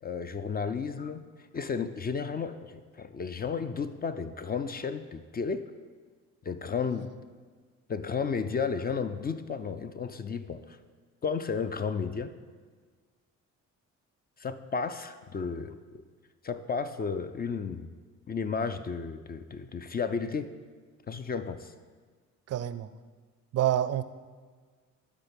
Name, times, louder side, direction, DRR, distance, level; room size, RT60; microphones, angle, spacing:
voice 1, 0.0-1.3 1.5-5.7 6.4-7.1 7.9-10.8 11.2-12.3 14.4-16.0 16.4-17.9 18.3-20.5 21.1-21.7, left 5 dB, 30° left, 10 dB, 0.4 m, -33 dB
voice 2, 22.5-22.9 23.5-24.0, right 11 dB, 55° right, 13 dB, 0.5 m, -27 dB
11.5 x 3.9 x 5.2 m, 1.5 s
cardioid pair, 90°, 30 cm